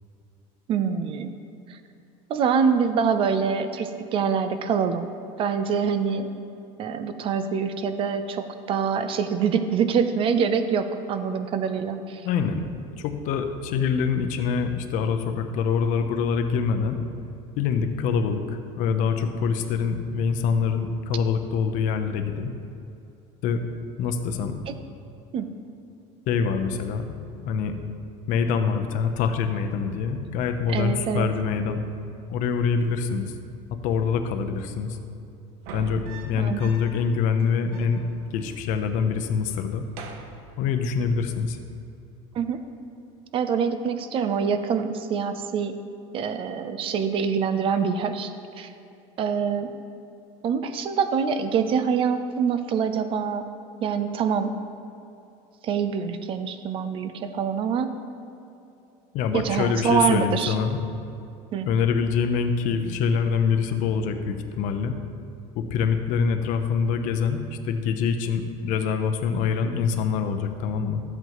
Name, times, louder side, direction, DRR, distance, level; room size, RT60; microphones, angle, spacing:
voice 1, 0.7-1.3 1.7-1.8 2.3-5.1 5.4-6.3 6.8-12.2 24.7-24.8 25.3-25.5 30.7-31.3 36.4-36.7 42.3-42.6 43.3-45.7 46.1-48.3 48.6-48.7 49.2-49.7 50.4-53.4 53.8-54.5 55.6-57.9 59.3-60.5 61.5-61.7, right 6 dB, 35° right, 9 dB, 0.6 m, -25 dB
voice 2, 12.2-12.7 13.0-17.0 17.6-22.5 23.4-23.6 24.0-24.6 26.3-27.8 28.3-31.8 32.3-33.3 33.8-35.0 35.7-38.0 38.3-39.9 40.6-41.6 59.1-60.8 61.7-64.9 65.5-71.0, left 6 dB, 55° left, 7 dB, 0.8 m, -25 dB
sound 1, 35.5-37.1 37.4-37.5 37.7-38.7 39.0-39.3 39.7-41.1 42.3-42.7, right 2 dB, 75° right, 1.1 m, -43 dB
13.0 x 7.9 x 3.1 m, 2.7 s
cardioid pair, 145°, 15 cm